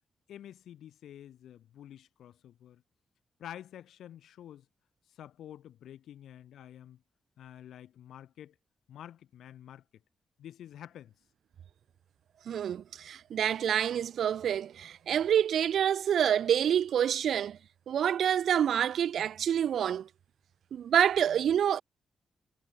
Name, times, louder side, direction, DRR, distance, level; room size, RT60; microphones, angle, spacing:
voice 1, 0.3-2.8 3.4-4.7 5.1-7.0 7.4-8.5 8.9-9.8 10.4-11.1, left 11 dB, 90° left, 3.0 m, -48 dB
voice 2, 12.5-17.6 17.9-20.1 20.7-21.8, right 9 dB, 80° right, 0.5 m, -27 dB
cardioid pair, 70°, 0 cm